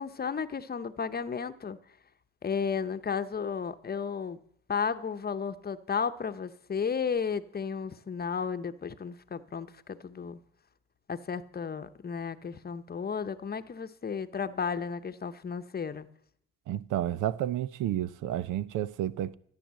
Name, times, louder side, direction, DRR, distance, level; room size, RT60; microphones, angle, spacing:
voice 1, 0.0-1.8 2.4-4.4 4.7-10.4 11.1-16.1, left 6 dB, 30° left, 0.8 m, -33 dB
voice 2, 16.7-19.3, right 12 dB, 85° right, 0.7 m, -31 dB
13.0 x 10.5 x 7.5 m
cardioid pair, 90°, 30 cm